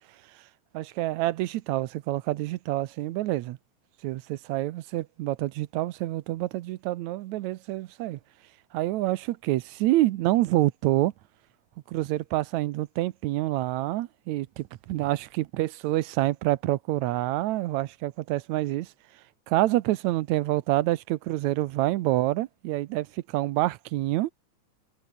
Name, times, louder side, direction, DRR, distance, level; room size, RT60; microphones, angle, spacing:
voice 1, 0.7-3.6 4.0-8.2 8.7-11.1 11.9-18.9 19.5-24.3, right 16 dB, 75° right, 2.0 m, -27 dB
omnidirectional pair, 3.5 m